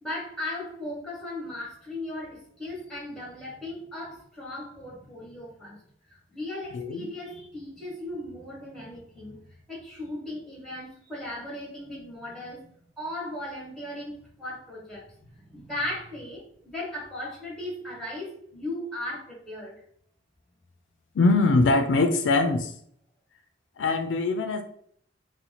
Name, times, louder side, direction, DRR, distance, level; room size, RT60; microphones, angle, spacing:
voice 1, 0.0-5.8 6.3-19.8, left 1 dB, 5° left, -4 dB, 1.3 m, -37 dB
voice 2, 6.7-7.1 21.1-22.7 23.8-24.6, left 3 dB, 70° left, 6 dB, 0.4 m, -22 dB
2.9 x 2.1 x 4.0 m, 0.63 s
head